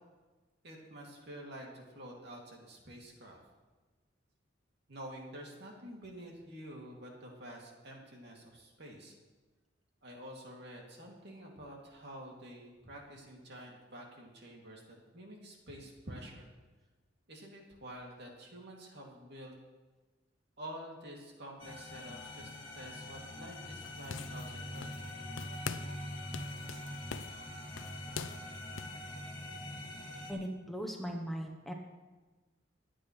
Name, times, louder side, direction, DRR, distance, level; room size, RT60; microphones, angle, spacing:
voice 1, 0.6-3.4 4.9-9.1 10.0-14.8 15.1-16.5 17.3-19.5 20.6-25.0, right 1 dB, 60° right, -1 dB, 2.4 m, -48 dB
sound 1, 21.6-30.3, left 1 dB, 25° left, 2.2 m, -44 dB
sound 2, 23.8-25.1 25.4-26.0 26.3-29.0, left 6 dB, 75° left, 0.5 m, -43 dB
voice 2, 30.3-31.7, equal, ahead, 2 dB, 0.8 m, -39 dB
21.0 x 8.7 x 3.1 m, 1.2 s
head